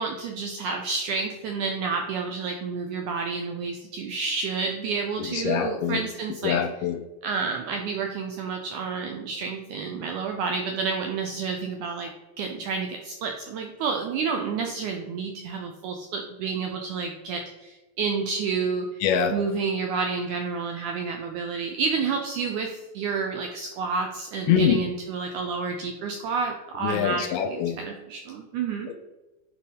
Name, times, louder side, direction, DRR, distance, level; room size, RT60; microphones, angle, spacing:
voice 1, 0.0-6.6 7.2-12.1 12.4-19.0 19.3-28.9, right 5 dB, 80° right, 3 dB, 1.8 m, -30 dB
voice 2, 5.3-6.0 6.4-7.0 19.0-19.4 24.5-24.9 26.8-27.8 28.9-29.0, left 7 dB, 85° left, 6 dB, 1.9 m, -24 dB
8.5 x 4.6 x 5.2 m, 1.1 s
omnidirectional pair, 4.4 m